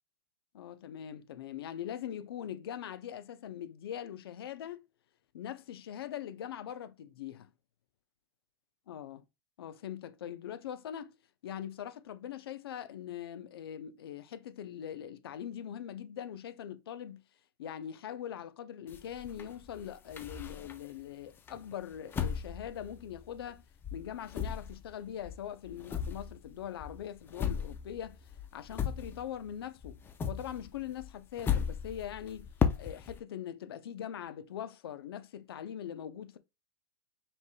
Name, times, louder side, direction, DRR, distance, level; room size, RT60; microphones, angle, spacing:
voice 1, 0.5-4.8 5.3-7.5 8.9-9.2 9.6-11.1 11.4-17.2 17.6-23.6 23.9-32.5 32.8-36.4, left 10 dB, 75° left, 0.6 m, -42 dB
sound 1, 18.9-21.0 21.5-23.6 23.8-29.5 29.8-33.2, left 7 dB, 15° left, 0.5 m, -36 dB
5.2 x 3.3 x 2.2 m
hypercardioid pair, 130°, 13 cm